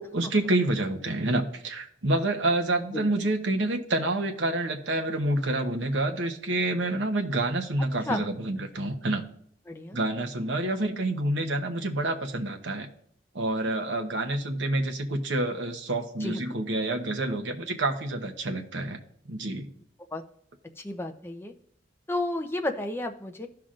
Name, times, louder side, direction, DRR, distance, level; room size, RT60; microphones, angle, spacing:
voice 1, 0.0-9.2 9.9-12.9 13.3-19.0 19.3-19.7, right 2 dB, 85° right, 4 dB, 1.0 m, -28 dB
voice 2, 2.9-3.3 8.1-8.2 9.7-10.0 16.2-16.6 20.1-20.2 20.8-21.5 22.1-23.5, left 2 dB, 15° left, 5 dB, 0.7 m, -32 dB
15.0 x 5.8 x 2.5 m, 0.68 s
head